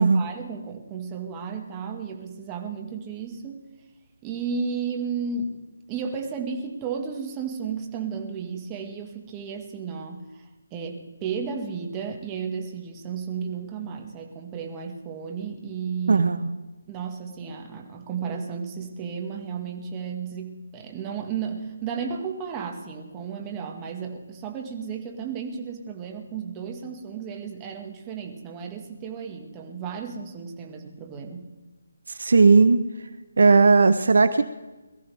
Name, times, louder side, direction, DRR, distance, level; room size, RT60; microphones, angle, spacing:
voice 1, 0.0-3.6 4.2-5.5 5.9-16.3 16.9-31.5, right 6 dB, 15° right, 2 dB, 1.8 m, -33 dB
voice 2, 16.1-16.5 32.2-32.8 33.4-34.4, right 4 dB, 70° right, 12 dB, 0.9 m, -17 dB
22.0 x 14.0 x 3.5 m, 1.1 s
hypercardioid pair, 165°, 0 cm